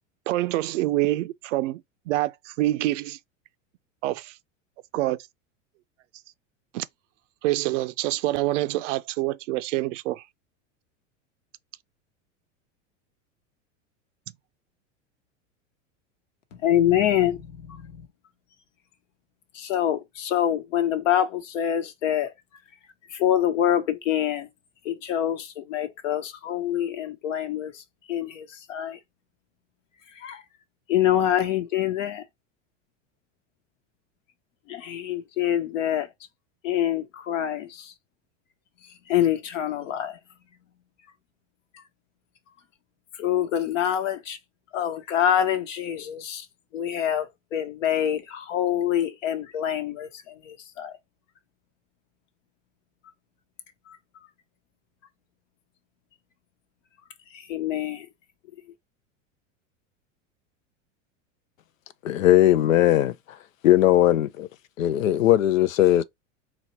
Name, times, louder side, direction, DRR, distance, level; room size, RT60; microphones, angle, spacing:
voice 1, 0.3-3.2 4.0-4.3 4.9-5.2 6.7-6.9 7.4-10.2, right 16 dB, 70° right, 0.5 m, -26 dB
voice 2, 16.6-17.8 19.5-22.3 23.1-24.5 24.8-27.8 28.1-29.0 30.2-30.4 30.9-32.2 34.7-36.1 36.6-37.9 39.1-40.2 43.2-44.4 44.7-46.5 46.7-50.9 57.5-58.1, left 10 dB, 75° left, 1.1 m, -25 dB
voice 3, 62.0-63.1 63.6-64.5 64.8-66.0, left 13 dB, 90° left, 0.6 m, -19 dB
4.0 x 2.1 x 4.3 m
hypercardioid pair, 105°, 39 cm